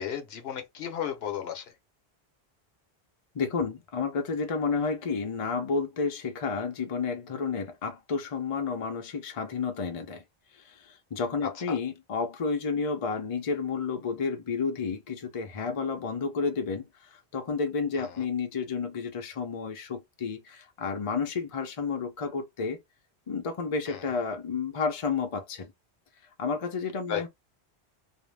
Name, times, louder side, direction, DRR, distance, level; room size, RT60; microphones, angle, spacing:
voice 1, 0.0-1.6 11.4-11.8 17.9-18.2 23.9-24.0 27.1-27.2, left 8 dB, 70° left, 0.9 m, -34 dB
voice 2, 3.3-10.2 10.5-16.8 17.3-22.8 23.3-25.7 26.4-27.3, left 5 dB, 40° left, 0.5 m, -31 dB
2.5 x 2.1 x 3.2 m
omnidirectional pair, 1.1 m